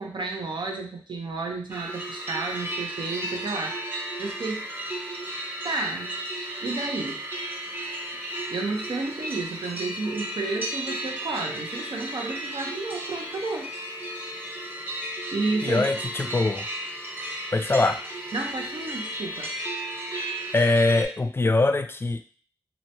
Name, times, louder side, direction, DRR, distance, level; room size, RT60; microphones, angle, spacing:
voice 1, 0.0-4.7 5.6-6.1 6.6-7.2 8.5-13.7 15.3-15.9 18.3-19.5, right 3 dB, 65° right, 1 dB, 0.7 m, -31 dB
sound 1, 1.7-21.1, right 1 dB, 25° right, 0.9 m, -34 dB
voice 2, 15.6-16.7 17.5-18.0 20.5-22.2, left 2 dB, 30° left, 9 dB, 0.3 m, -22 dB
2.9 x 2.1 x 2.7 m, 0.43 s
cardioid pair, 40°, 9 cm